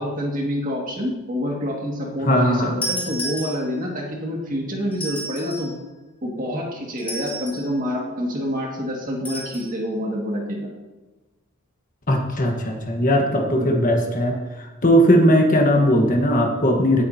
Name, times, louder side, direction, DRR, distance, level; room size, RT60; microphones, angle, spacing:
voice 1, 0.0-5.7 6.2-10.7 13.6-13.8, equal, 40° right, -1 dB, 2.1 m, -27 dB
voice 2, 2.3-2.7 12.1-14.4 14.8-17.0, equal, 35° left, 2 dB, 1.4 m, -18 dB
sound 1, 2.8-4.0 4.9-5.8 7.0-7.7 9.2-9.7, right 1 dB, 10° left, 3.0 m, -31 dB
17.0 x 8.5 x 2.8 m, 1.2 s
head